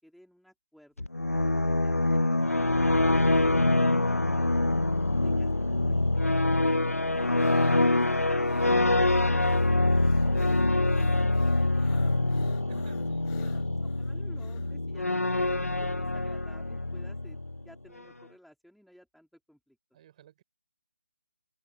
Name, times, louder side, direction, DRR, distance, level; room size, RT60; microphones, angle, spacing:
voice 1, 0.0-4.8 5.2-6.9 7.6-12.7 13.3-13.6 14.0-17.4 17.6-19.8, equal, ahead, 5.2 m, -56 dB
sound 1, 1.0-17.6, left 2 dB, 85° left, 0.6 m, -25 dB
sound 2, 6.5-14.7, left 35 dB, 15° left, 1.5 m, -54 dB
voice 2, 12.7-13.9 19.9-20.4, right 11 dB, 30° right, 7.5 m, -54 dB
open air
figure-of-eight pair, 145°, 8 cm